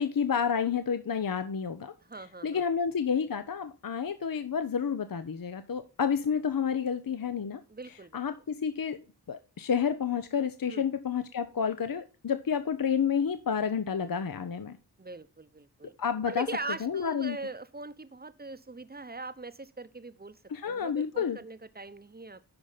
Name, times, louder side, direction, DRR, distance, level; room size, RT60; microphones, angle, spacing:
voice 1, 0.0-1.9 2.4-7.6 8.1-9.0 9.3-14.8 16.0-16.5 16.8-17.4 20.5-21.4, left 7 dB, 55° left, 0.7 m, -30 dB
voice 2, 2.0-2.7 7.7-8.2 10.7-10.8 15.0-15.9 16.3-20.4 20.6-22.4, right 3 dB, 25° right, 0.8 m, -41 dB
10.5 x 5.1 x 4.0 m
wide cardioid pair, 55°, 40 cm